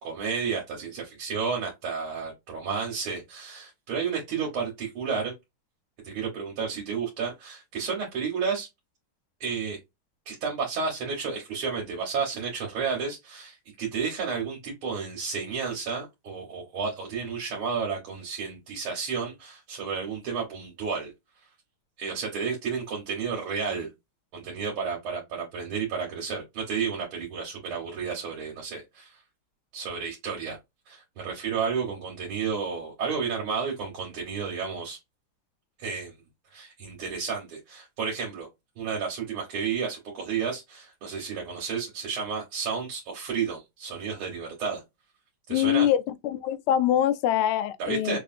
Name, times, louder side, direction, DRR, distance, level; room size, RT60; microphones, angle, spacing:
voice 1, 0.0-5.3 6.0-8.7 9.4-9.8 10.3-21.1 22.0-23.9 24.3-29.2 29.7-30.6 30.9-35.0 35.8-36.1 36.5-38.5 38.8-44.8 45.5-45.9 47.8-48.2, right 6 dB, 80° right, 2.1 m, -31 dB
voice 2, 45.5-48.2, left 11 dB, 90° left, 1.5 m, -24 dB
6.2 x 2.6 x 2.5 m
omnidirectional pair, 2.3 m